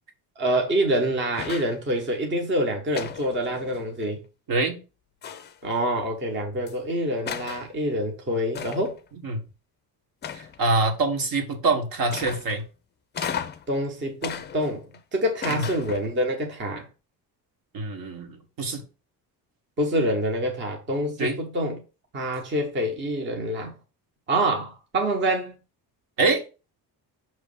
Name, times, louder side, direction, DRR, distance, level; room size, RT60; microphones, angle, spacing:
voice 1, 0.4-4.2 5.6-9.0 13.7-14.8 15.1-16.9 19.8-21.8 22.1-23.7 24.3-25.6, right 1 dB, 30° right, 1.1 m, -26 dB
sound 1, 1.3-1.8 2.9-4.1 5.2-5.7 6.7-6.8 7.3-7.7 8.5-9.0 10.2-10.8 12.1-12.6 13.1-13.7 14.2-15.0 15.4-16.2, left 8 dB, 25° left, 0.5 m, -35 dB
voice 2, 10.3-12.6 15.5-15.7 17.7-18.8 21.2-21.4 26.2-26.4, right 3 dB, 55° right, 1.5 m, -25 dB
6.3 x 3.2 x 5.4 m
cardioid pair, 165°, 39 cm